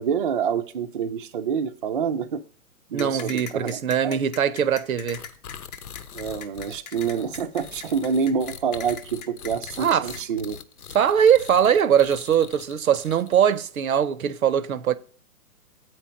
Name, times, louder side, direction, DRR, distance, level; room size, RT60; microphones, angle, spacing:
voice 1, 0.0-2.4 2.9-4.2 6.1-10.6, right 6 dB, 40° right, 0.5 m, -27 dB
voice 2, 2.9-5.2 9.8-10.1 10.9-15.0, right 8 dB, 70° right, 0.7 m, -21 dB
sound 1, 3.0-10.2, left 7 dB, 30° left, 0.7 m, -39 dB
sound 2, 5.1-13.6, left 7 dB, 80° left, 0.9 m, -42 dB
7.9 x 4.6 x 5.0 m
hypercardioid pair, 145°, 44 cm